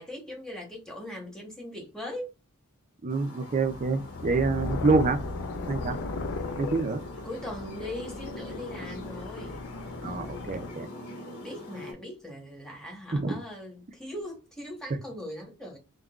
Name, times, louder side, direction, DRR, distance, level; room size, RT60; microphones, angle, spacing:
voice 1, 0.0-2.3 7.2-9.6 11.4-15.8, left 1 dB, 5° left, 1.0 m, -40 dB
voice 2, 3.0-5.2 5.7-6.0 6.6-7.0 10.0-10.9 13.1-13.4, right 3 dB, 35° right, 0.5 m, -26 dB
sound 1, 3.1-11.9, left 1 dB, 90° left, 1.1 m, -44 dB
sound 2, 3.5-10.7, left 3 dB, 60° left, 0.4 m, -36 dB
3.5 x 2.3 x 2.3 m
head